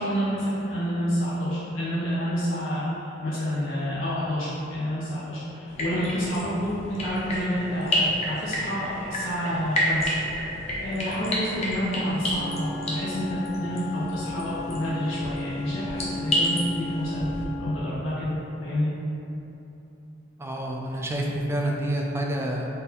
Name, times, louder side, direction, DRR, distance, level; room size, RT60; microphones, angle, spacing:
voice 1, 0.0-10.1 10.8-17.3 17.6-18.9, equal, 85° left, -10 dB, 0.8 m, -29 dB
sound 1, 5.7-17.4, equal, 35° left, 0.7 m, -30 dB
Wind instrument woodwind instrument, 11.9-17.9, left 2 dB, 65° left, 0.4 m, -35 dB
voice 2, 20.4-22.7, right 1 dB, 15° right, -1 dB, 0.3 m, -28 dB
4.1 x 2.6 x 3.9 m, 2.9 s
head